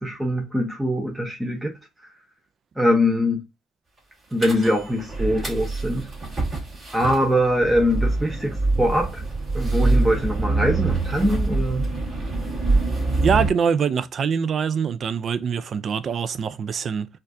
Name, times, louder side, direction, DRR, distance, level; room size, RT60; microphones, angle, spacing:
voice 1, 0.0-1.7 2.8-3.4 4.3-6.1 6.9-9.2 9.5-11.9, equal, 5° right, 0.7 m, -22 dB
sound 1, 4.4-13.5, right 3 dB, 30° right, 2.2 m, -25 dB
voice 2, 13.2-17.1, right 6 dB, 45° right, 0.4 m, -24 dB
4.2 x 2.4 x 2.7 m
cardioid pair, 110°, 0 cm